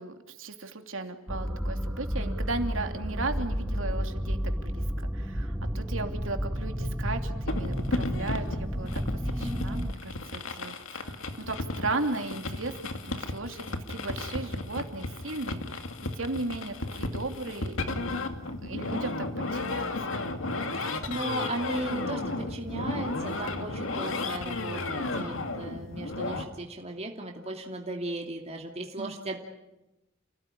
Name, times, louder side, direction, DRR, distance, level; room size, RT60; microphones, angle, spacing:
voice 1, 0.0-8.9 9.3-12.7 13.0-15.8 16.2-18.1 18.6-19.3 19.5-20.2 20.9-21.1 25.5-25.6 29.0-29.2, right 2 dB, 75° right, 5 dB, 3.0 m, -36 dB
sound 1, 1.3-9.9, equal, 5° right, 1.4 m, -31 dB
sound 2, 7.5-26.4, left 2 dB, 75° left, 2.4 m, -34 dB
voice 2, 20.7-29.4, right 2 dB, 35° right, 1 dB, 2.8 m, -36 dB
30.0 x 18.0 x 10.0 m, 0.97 s
head